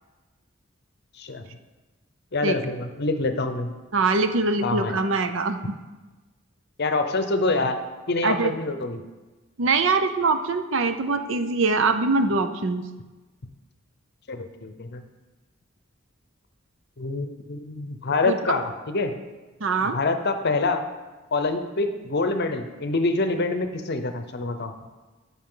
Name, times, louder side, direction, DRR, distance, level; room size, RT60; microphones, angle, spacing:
voice 1, 2.3-3.7 4.6-5.0 6.8-7.8 8.1-9.0 14.3-15.0 17.0-19.1 19.8-20.8 21.3-24.7, left 3 dB, 50° left, 8 dB, 0.7 m, -26 dB
voice 2, 3.9-5.8 8.2-8.5 9.6-12.8 18.2-18.4 19.6-20.0, right 3 dB, 65° right, 9 dB, 0.6 m, -23 dB
14.0 x 5.8 x 3.8 m, 1.2 s
head